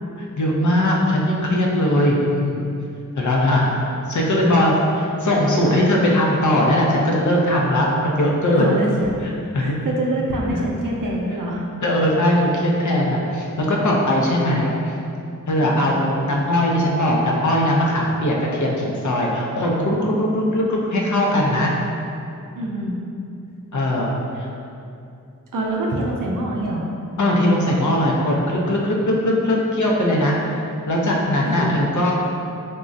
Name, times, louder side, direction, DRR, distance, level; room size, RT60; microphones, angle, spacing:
voice 1, 0.4-2.6 3.2-3.8 4.1-8.7 9.5-9.8 11.8-14.9 15.5-21.7 23.7-24.1 24.4-24.5 27.2-28.9 29.2-30.3 30.9-32.1, left 1 dB, 65° left, -2 dB, 0.5 m, -19 dB
voice 2, 8.5-9.1 9.6-11.6 12.8-13.0 15.6-16.0 22.6-23.0 25.5-26.8 31.4-31.8, right 1 dB, 80° right, -1 dB, 0.5 m, -25 dB
3.6 x 2.0 x 2.5 m, 2.6 s
wide cardioid pair, 60°, 32 cm